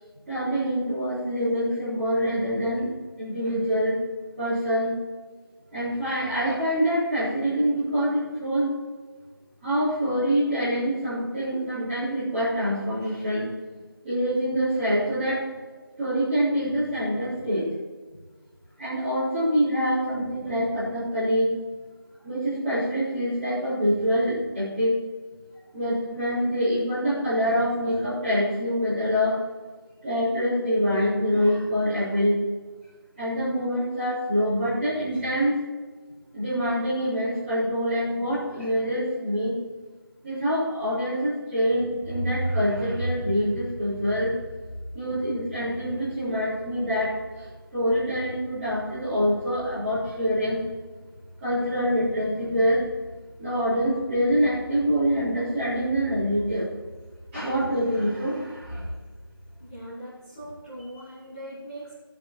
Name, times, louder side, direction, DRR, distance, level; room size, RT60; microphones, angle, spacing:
voice 1, 0.3-2.9 3.2-4.0 4.4-5.0 5.7-8.7 9.6-13.5 14.0-15.4 16.0-17.6 18.8-21.6 22.2-25.0 25.7-29.4 30.0-32.4 33.2-35.6 36.3-39.5 40.2-44.3 44.9-50.6 51.4-52.8 53.4-56.7 57.3-58.8, equal, 5° right, -17 dB, 3.9 m, -25 dB
voice 2, 59.6-61.9, right 1 dB, 20° left, -11 dB, 2.8 m, -40 dB
14.5 x 8.0 x 4.5 m, 1.4 s
figure-of-eight pair, 170°, 12 cm